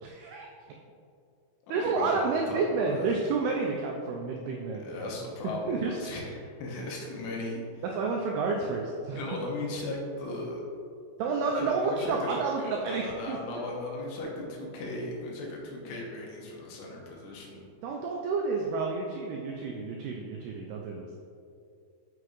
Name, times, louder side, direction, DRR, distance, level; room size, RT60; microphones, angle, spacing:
voice 1, 0.0-0.5 1.7-4.9 5.7-6.1 7.9-9.4 11.2-13.4 17.8-21.2, right 4 dB, 90° right, 0 dB, 2.3 m, -30 dB
voice 2, 1.8-3.2 4.8-7.8 9.2-10.6 11.5-17.6, left 2 dB, 80° left, -2 dB, 3.1 m, -37 dB
7.7 x 6.0 x 3.1 m, 2.4 s
omnidirectional pair, 5.3 m